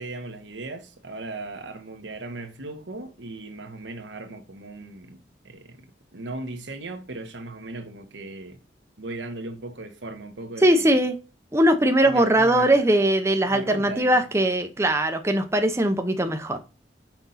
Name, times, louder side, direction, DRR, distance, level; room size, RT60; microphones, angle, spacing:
voice 1, 0.0-8.6 9.0-11.0 12.1-12.9 13.4-14.2, right 2 dB, 85° right, 1.3 m, -37 dB
voice 2, 10.6-11.1 11.5-16.6, right 1 dB, 15° right, 0.8 m, -20 dB
6.0 x 5.3 x 4.1 m
head